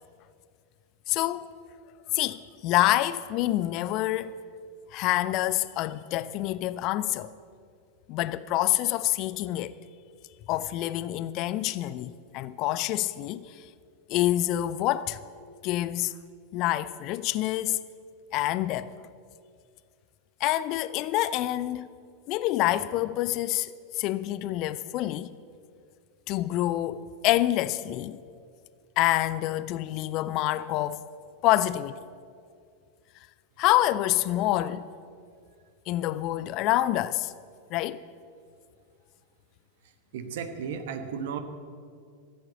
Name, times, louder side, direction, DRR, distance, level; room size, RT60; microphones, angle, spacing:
voice 1, 1.1-1.5 2.1-4.4 4.9-7.3 8.1-9.8 10.5-13.7 14.1-15.2 15.6-16.1 16.5-17.8 18.3-18.9 20.4-21.9 22.3-25.3 26.3-28.2 29.0-31.0 31.4-32.0 33.6-34.9 35.9-37.3 37.7-38.0, left 15 dB, 40° left, 0.4 m, -27 dB
voice 2, 39.8-41.4, right 7 dB, 55° right, 1.2 m, -35 dB
14.5 x 8.7 x 7.7 m
figure-of-eight pair, 90°, 0 cm